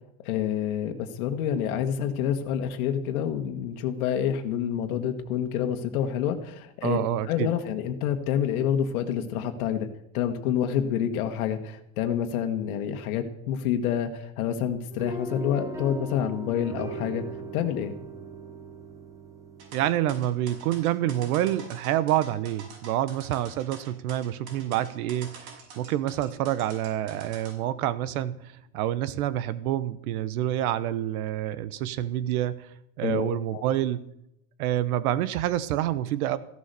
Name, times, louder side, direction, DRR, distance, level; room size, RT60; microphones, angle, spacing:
voice 1, 0.2-9.9 10.1-17.3 17.5-18.0 33.0-33.6, left 9 dB, 80° left, 6 dB, 1.6 m, -28 dB
voice 2, 6.8-7.5 19.7-34.0 34.6-36.4, right 12 dB, 85° right, 15 dB, 1.1 m, -27 dB
sound 1, 14.9-21.2, right 3 dB, 10° right, 0.6 m, -39 dB
sound 2, 19.6-27.5, right 5 dB, 65° right, 6.0 m, -46 dB
15.5 x 12.0 x 6.8 m, 0.79 s
supercardioid pair, 175°, 43 cm